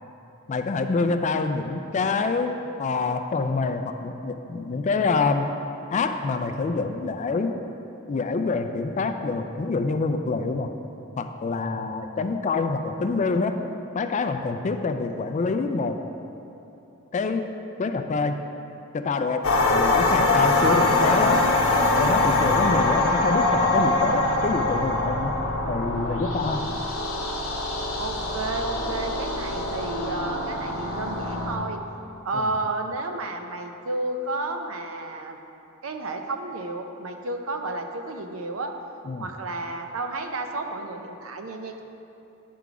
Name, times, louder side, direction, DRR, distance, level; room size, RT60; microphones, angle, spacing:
voice 1, 0.5-2.5 2.8-5.5 5.9-7.6 8.1-10.7 11.2-13.6 13.9-16.0 17.1-17.5 17.8-18.4 18.9-19.5 19.7-21.4 21.9-25.3 25.7-26.6 39.1-39.3, left 4 dB, 35° left, 7 dB, 0.3 m, -26 dB
sound 1, 19.4-31.6, left 2 dB, 85° left, 0.7 m, -23 dB
voice 2, 20.6-21.5 28.0-31.8 32.2-35.4 35.8-38.7 39.2-41.8, right 2 dB, 80° right, 5 dB, 0.6 m, -31 dB
9.3 x 3.8 x 4.7 m, 2.8 s
head